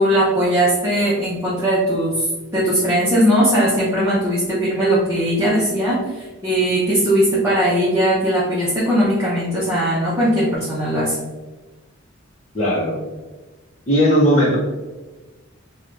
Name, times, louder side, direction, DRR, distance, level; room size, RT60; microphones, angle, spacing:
voice 1, 0.0-2.3 2.5-11.2, equal, 15° right, -8 dB, 0.7 m, -19 dB
voice 2, 12.5-13.0 13.9-14.6, equal, 40° left, -8 dB, 0.7 m, -16 dB
4.8 x 2.3 x 2.5 m, 1.2 s
head